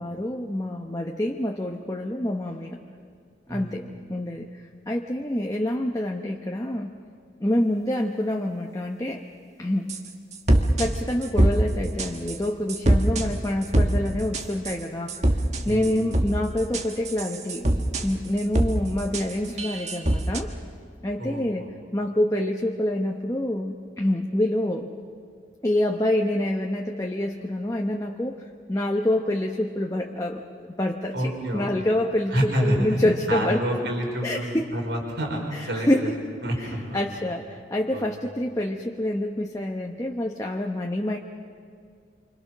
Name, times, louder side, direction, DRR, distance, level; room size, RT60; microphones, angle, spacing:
voice 1, 0.0-2.8 3.5-4.6 4.9-6.9 7.4-9.2 9.6-10.0 10.8-15.2 15.6-20.5 21.0-21.7 21.9-24.9 25.6-28.4 28.7-32.3 32.6-33.6 34.2-34.6 35.5-36.2 36.6-41.2, left 1 dB, 20° left, 1 dB, 1.0 m, -27 dB
sound 1, 9.9-10.1 10.3-10.9 11.2-11.6 12.0-12.4 12.7-13.3 13.6-13.9 14.3-14.8 15.1-16.3 16.6-18.1 18.4-18.7 19.0-20.4, right 1 dB, 40° right, 1.6 m, -23 dB
voice 2, 15.6-16.0 21.2-21.7 31.1-31.7 32.3-36.1 36.4-37.1 37.9-38.0, equal, 85° right, 0 dB, 5.2 m, -28 dB
28.0 x 25.5 x 6.2 m, 2.2 s
head